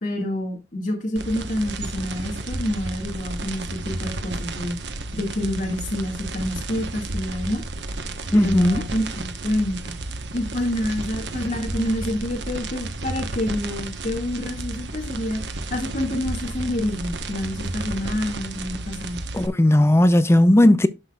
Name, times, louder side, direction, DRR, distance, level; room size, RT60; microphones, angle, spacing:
voice 1, 0.0-4.8 5.1-7.6 8.3-9.9 10.3-15.4 15.7-19.2, left 1 dB, 45° left, 1.9 m, -28 dB
sound 1, 1.2-19.5, right 2 dB, 70° right, 1.1 m, -32 dB
voice 2, 8.3-8.8 19.3-20.9, left 1 dB, 15° left, 0.5 m, -16 dB
12.0 x 5.9 x 2.3 m
head